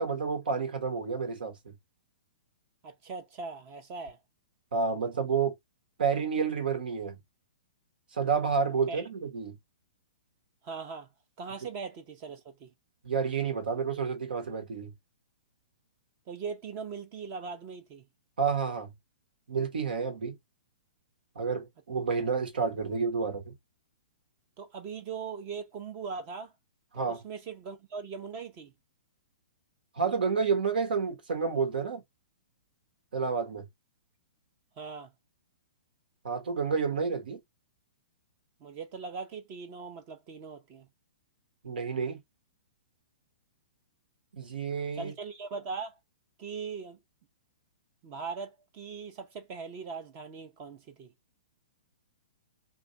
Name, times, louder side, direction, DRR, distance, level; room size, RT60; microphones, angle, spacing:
voice 1, 0.0-1.7 4.7-5.5 6.0-7.2 8.1-9.6 13.0-14.9 18.4-18.9 19.5-20.4 21.3-23.5 26.9-27.2 30.0-32.0 33.1-33.7 36.2-37.4 41.6-42.2 44.3-45.1, right 5 dB, 85° right, 1.3 m, -30 dB
voice 2, 2.8-4.2 8.9-9.1 10.6-11.1 11.4-12.7 16.3-18.1 24.6-26.5 26.9-28.7 34.8-35.1 38.6-40.9 44.9-46.0 46.4-47.0 48.0-51.1, right 5 dB, 30° right, 0.6 m, -40 dB
2.6 x 2.4 x 3.9 m
hypercardioid pair, 160°, 5 cm